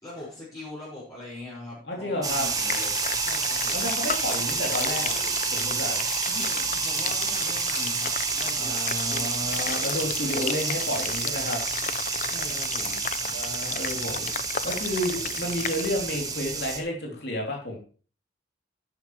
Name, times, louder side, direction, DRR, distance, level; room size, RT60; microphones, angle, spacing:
voice 1, 0.0-3.9 6.2-9.6 12.3-13.0, left 2 dB, 20° left, -9 dB, 5.4 m, -42 dB
voice 2, 1.9-2.5 3.7-5.1 5.5-6.0 8.6-11.6 13.3-14.3 14.6-17.8, left 1 dB, 60° left, -1 dB, 3.2 m, -31 dB
sound 1, 2.2-16.8, right 5 dB, 20° right, 1.3 m, -29 dB
sound 2, 2.6-15.9, left 8 dB, 40° left, 0.5 m, -34 dB
11.5 x 9.6 x 3.3 m, 0.39 s
head